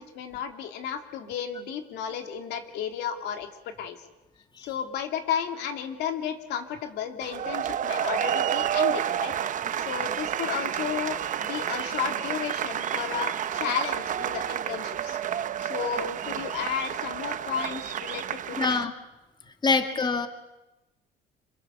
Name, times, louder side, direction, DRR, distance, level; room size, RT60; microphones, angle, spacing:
voice 1, 0.0-3.5 3.8-4.0 4.6-9.3 9.8-15.2 15.6-18.7, left 8 dB, 85° left, 5 dB, 2.9 m, -33 dB
sound 1, 7.2-18.8, right 9 dB, 50° right, 0.9 m, -30 dB
voice 2, 18.6-18.9 19.6-20.3, left 4 dB, 25° left, 6 dB, 2.2 m, -25 dB
26.5 x 24.5 x 7.2 m, 1.0 s
cardioid pair, 110°, 17 cm